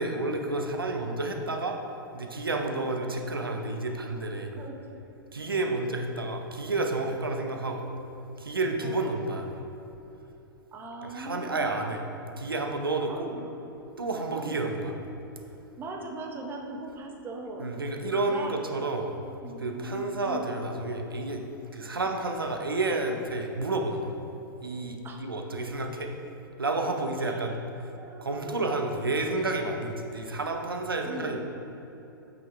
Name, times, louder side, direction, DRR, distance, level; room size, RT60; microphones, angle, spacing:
voice 1, 0.0-1.8 2.1-4.5 5.3-7.9 8.4-9.6 11.0-12.0 12.4-13.3 14.0-15.0 17.6-19.1 19.6-21.4 21.7-24.2 24.6-26.1 26.6-27.6 28.2-31.4, right 2 dB, 75° right, 4 dB, 0.8 m, -30 dB
voice 2, 4.5-5.0 5.5-5.6 8.8-9.1 10.7-11.9 13.1-13.5 14.3-14.8 15.8-17.7 18.3-18.6 19.4-20.6 25.0-25.2 27.2-27.5 28.0-28.7 31.0-31.4, right 2 dB, 15° right, 2 dB, 0.8 m, -40 dB
8.5 x 6.2 x 3.4 m, 3.0 s
figure-of-eight pair, 105°, 12 cm